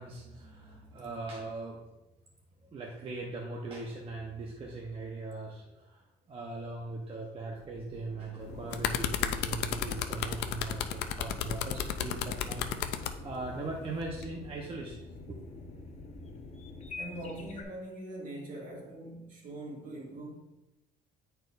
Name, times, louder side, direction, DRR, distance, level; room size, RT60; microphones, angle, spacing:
voice 1, 0.0-1.8 2.7-6.0 6.3-15.4, right 3 dB, 35° right, 1.0 m, -40 dB
sound 1, 7.4-17.3, right 1 dB, 75° right, 1.6 m, -54 dB
sound 2, 8.4-13.1 14.0-14.2, left 10 dB, 85° left, 0.5 m, -32 dB
sound 3, 8.4-17.6, left 2 dB, 45° left, 1.0 m, -46 dB
voice 2, 17.0-20.4, right 1 dB, 55° right, 2.1 m, -42 dB
10.0 x 4.5 x 2.6 m
cardioid pair, 110°, 17 cm